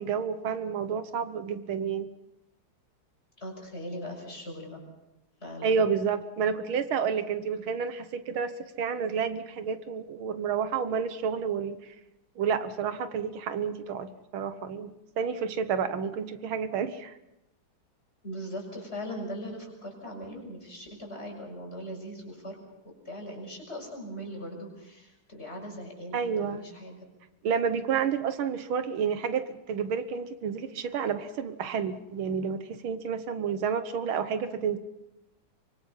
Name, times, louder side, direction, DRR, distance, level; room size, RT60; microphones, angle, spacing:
voice 1, 0.0-2.1 5.6-8.5 8.8-11.9 12.4-17.2 26.1-26.7 27.4-34.8, right 6 dB, 80° right, 11 dB, 1.9 m, -30 dB
voice 2, 3.4-4.8 5.4-5.7 18.2-22.6 22.8-27.0, equal, 30° left, 0 dB, 6.5 m, -40 dB
24.5 x 24.5 x 5.6 m, 0.91 s
omnidirectional pair, 2.2 m